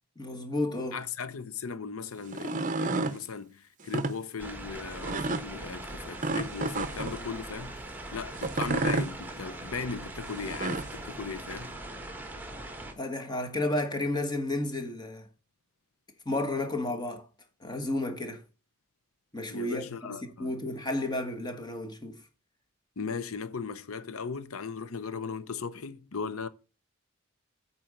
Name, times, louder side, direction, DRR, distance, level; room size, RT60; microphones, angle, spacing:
voice 1, 0.2-1.0 13.0-15.3 16.2-17.3 17.6-18.4 19.3-22.2, left 2 dB, 20° left, 1.4 m, -32 dB
voice 2, 0.9-11.7 19.5-20.5 23.0-26.5, left 5 dB, 90° left, 0.7 m, -37 dB
sound 1, 2.2-3.2 3.8-4.1 5.0-5.4 6.2-7.2 8.3-9.1 10.3-10.9, right 3 dB, 40° right, 0.7 m, -30 dB
sound 2, 4.4-12.9, right 1 dB, 10° right, 1.3 m, -41 dB
8.9 x 4.4 x 6.4 m
head